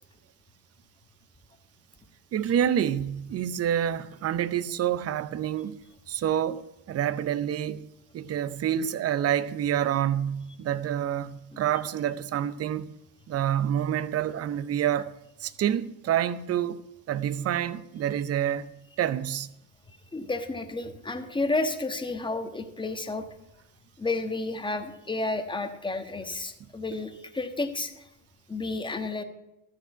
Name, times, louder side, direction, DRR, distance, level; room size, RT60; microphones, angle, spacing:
voice 1, 2.3-5.8 6.1-7.9 8.1-13.0 13.3-15.1 15.4-16.8 17.1-18.7 19.0-19.5, right 10 dB, 30° right, 0.7 m, -27 dB
voice 2, 20.1-23.2 24.0-28.0 28.5-29.2, left 2 dB, 10° left, 1.3 m, -31 dB
13.0 x 4.8 x 8.9 m
hypercardioid pair, 75°, 46 cm